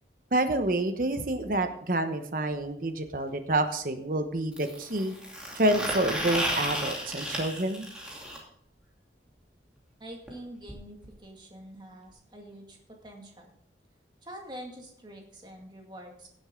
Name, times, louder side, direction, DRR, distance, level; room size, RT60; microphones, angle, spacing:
voice 1, 0.3-5.1 5.5-7.9, right 1 dB, 50° right, 7 dB, 1.1 m, -28 dB
sound 1, 4.5-8.4 10.3-10.4 10.7-10.8 11.0-11.2 12.1-12.2, equal, 5° right, 2.6 m, -33 dB
voice 2, 10.0-13.5 14.2-16.3, equal, 25° right, 1 dB, 2.1 m, -46 dB
17.0 x 7.9 x 3.8 m, 0.67 s
head